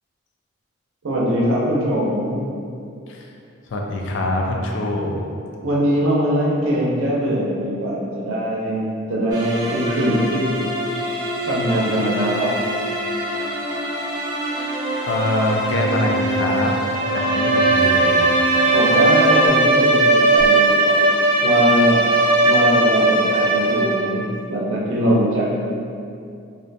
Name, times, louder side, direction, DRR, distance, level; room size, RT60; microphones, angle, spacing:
voice 1, 1.0-2.4 5.6-10.6 11.5-12.6 18.7-20.9 21.4-22.0 22.4-25.5, equal, 90° right, -4 dB, 0.5 m, -21 dB
voice 2, 3.7-5.1 15.1-16.7 17.1-18.2, left 1 dB, 65° left, 1 dB, 0.3 m, -23 dB
sound 1, 9.3-19.5, right 1 dB, 20° right, 0.3 m, -25 dB
Bowed string instrument, 17.0-24.1, right 2 dB, 45° right, 0.8 m, -17 dB
2.5 x 2.1 x 2.5 m, 2.5 s
head